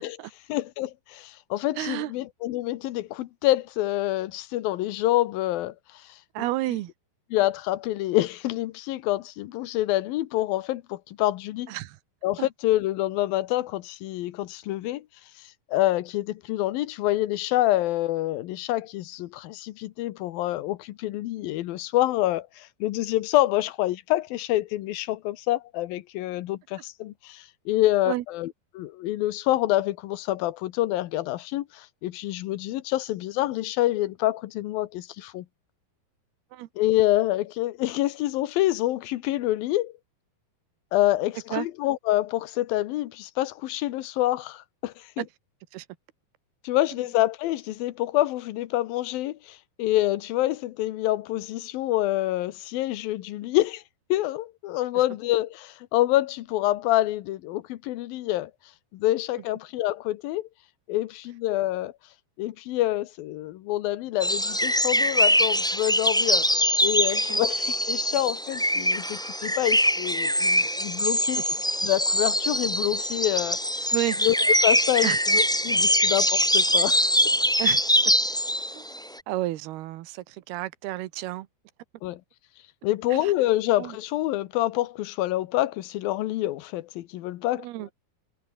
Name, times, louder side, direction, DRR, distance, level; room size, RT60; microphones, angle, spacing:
voice 1, 0.5-6.8 7.3-11.7 12.2-15.1 15.4-35.5 36.8-39.9 40.9-45.3 46.6-53.8 54.1-58.5 58.9-60.5 60.9-61.9 62.4-66.5 66.8-71.6 71.8-73.6 74.2-77.1 82.0-82.2 82.8-87.9, left 15 dB, 75° left, 2.7 m, -27 dB
voice 2, 1.8-2.1 6.4-6.9 11.7-11.9 28.1-28.2 36.5-36.7 41.5-41.7 45.2-45.3 45.7-45.8 67.3-67.4 73.9-74.2 75.0-75.2 77.6-77.8 79.3-81.5 83.8-83.9 87.6-87.9, right 16 dB, 85° right, 3.0 m, -30 dB
sound 1, 64.2-79.1, equal, ahead, 1.2 m, -23 dB
omnidirectional pair, 4.4 m